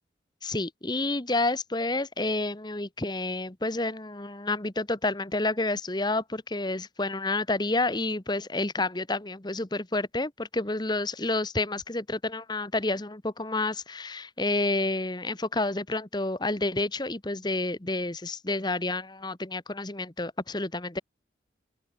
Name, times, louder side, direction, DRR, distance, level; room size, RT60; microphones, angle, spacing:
voice 1, 0.4-21.0, left 2 dB, 25° left, 1.4 m, -29 dB
open air
head